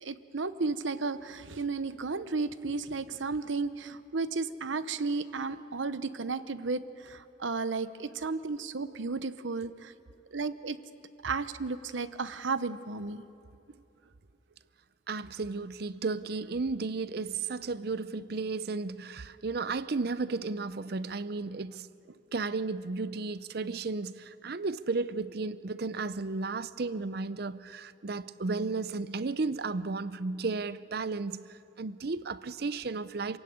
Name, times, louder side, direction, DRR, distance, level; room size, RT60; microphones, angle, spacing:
voice 1, 0.0-9.9 10.3-10.8 11.2-13.2, right 4 dB, 75° right, 0.9 m, -33 dB
voice 2, 15.1-21.9 22.3-33.4, right 3 dB, 55° right, 0.6 m, -34 dB
26.5 x 16.5 x 9.4 m
head